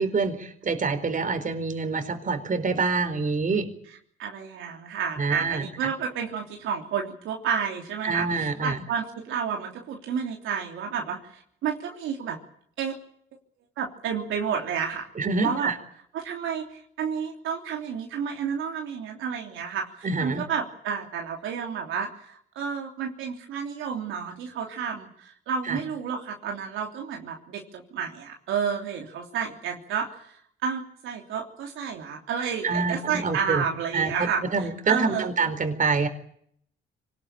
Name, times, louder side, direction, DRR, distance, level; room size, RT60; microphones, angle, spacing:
voice 1, 0.0-3.7 5.2-5.9 8.0-8.8 15.2-15.8 20.0-20.4 25.6-25.8 32.6-33.6 33.9-36.1, right 4 dB, 40° right, 8 dB, 4.3 m, -26 dB
voice 2, 4.2-12.4 12.8-12.9 13.8-15.1 15.4-15.7 16.1-35.3, right 7 dB, 90° right, 1 dB, 3.3 m, -31 dB
25.0 x 19.0 x 8.9 m, 0.67 s
cardioid pair, 90°, 20 cm